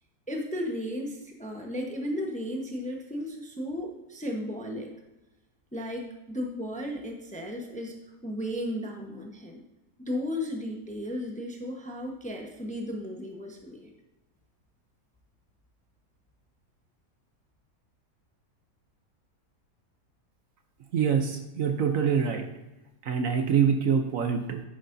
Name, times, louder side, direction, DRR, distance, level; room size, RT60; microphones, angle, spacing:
voice 1, 0.3-4.9 5.7-9.6 10.1-13.9, equal, 5° left, 1 dB, 0.8 m, -35 dB
voice 2, 20.9-22.5 23.0-24.6, right 7 dB, 65° right, 6 dB, 1.1 m, -25 dB
10.5 x 9.0 x 2.7 m, 1.0 s
omnidirectional pair, 1.7 m